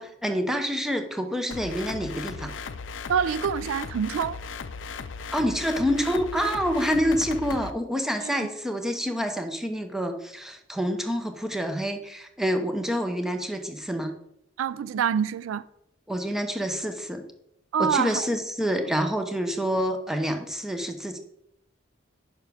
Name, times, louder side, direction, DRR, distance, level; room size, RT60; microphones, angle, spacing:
voice 1, 0.0-2.7 5.3-14.2 16.1-17.2 17.8-21.2, equal, ahead, 0.7 m, -27 dB
sound 1, 1.5-7.7, left 5 dB, 65° left, 0.5 m, -37 dB
voice 2, 3.1-4.4 8.2-8.3 14.6-15.6 17.7-18.3, right 7 dB, 80° right, 0.3 m, -26 dB
8.7 x 6.0 x 3.5 m
head